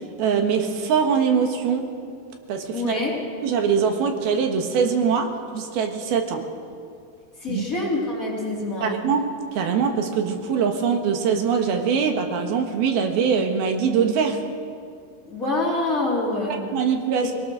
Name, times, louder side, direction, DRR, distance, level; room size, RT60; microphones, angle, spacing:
voice 1, 0.2-1.9 2.5-3.0 3.4-6.4 7.5-7.6 8.8-14.4 16.5-17.3, right 6 dB, 75° right, 4 dB, 3.4 m, -23 dB
voice 2, 2.7-3.2 7.4-8.9 15.2-16.6, left 2 dB, 20° left, -5 dB, 3.9 m, -26 dB
22.0 x 18.5 x 6.5 m, 2.4 s
omnidirectional pair, 4.6 m